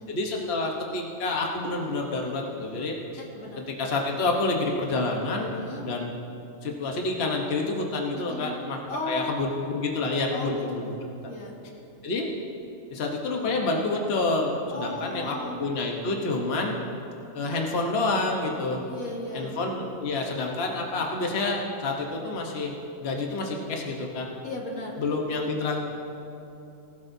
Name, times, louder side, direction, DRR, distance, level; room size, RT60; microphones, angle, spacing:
voice 1, 0.1-3.2 3.6-6.1 6.6-8.8 9.1-10.9 12.0-12.3 12.9-16.8 17.3-18.8 19.3-22.7 23.0-24.3 25.0-25.8, left 3 dB, 50° left, 0 dB, 1.3 m, -28 dB
voice 2, 3.3-3.7 5.6-5.9 8.1-8.5 8.9-9.4 10.3-10.7 11.3-11.6 14.7-15.6 18.9-19.5 24.4-25.0, left 2 dB, 85° left, -3 dB, 2.4 m, -36 dB
19.5 x 12.5 x 2.7 m, 2.9 s
omnidirectional pair, 1.5 m